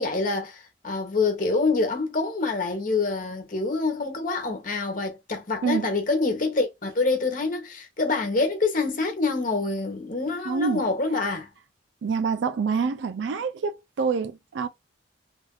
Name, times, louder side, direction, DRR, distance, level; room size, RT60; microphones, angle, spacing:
voice 1, 0.0-11.5, left 3 dB, 45° left, 1.2 m, -26 dB
voice 2, 10.5-10.8 12.0-14.7, right 5 dB, 65° right, 0.3 m, -26 dB
3.4 x 2.5 x 2.3 m
head